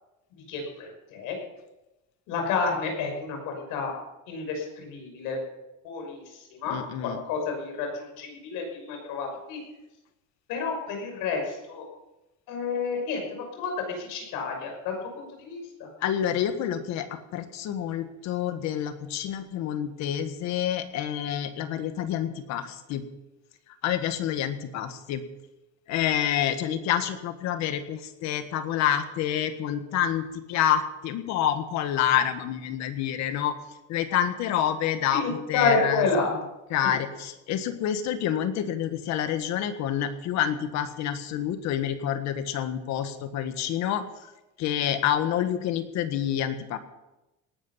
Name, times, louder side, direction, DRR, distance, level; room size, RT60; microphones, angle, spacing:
voice 1, 0.5-1.4 2.3-3.9 4.3-5.4 5.8-6.2 6.6-6.8 7.0-9.6 10.5-11.8 12.5-15.9 35.1-36.3, left 4 dB, 85° left, 3 dB, 6.0 m, -30 dB
voice 2, 6.7-7.2 16.0-23.0 23.8-25.2 25.9-33.6 33.9-36.0 36.3-36.4 36.7-44.0 44.6-46.8, left 10 dB, 60° left, 9 dB, 1.6 m, -28 dB
19.0 x 12.0 x 5.6 m, 0.98 s
cardioid pair, 175°, 31 cm